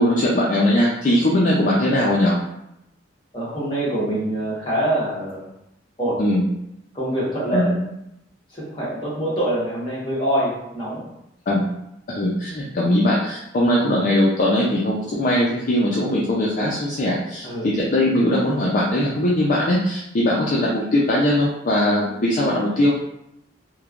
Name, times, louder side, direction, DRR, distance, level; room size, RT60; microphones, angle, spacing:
voice 1, 0.0-2.3 6.2-6.4 7.5-7.7 11.5-11.6 12.1-22.9, left 1 dB, 45° left, -5 dB, 0.4 m, -20 dB
voice 2, 3.3-5.4 6.0-6.2 6.9-7.7 8.5-11.0 17.4-17.7, right 1 dB, 25° left, -7 dB, 1.0 m, -25 dB
3.1 x 2.1 x 2.4 m, 0.82 s
head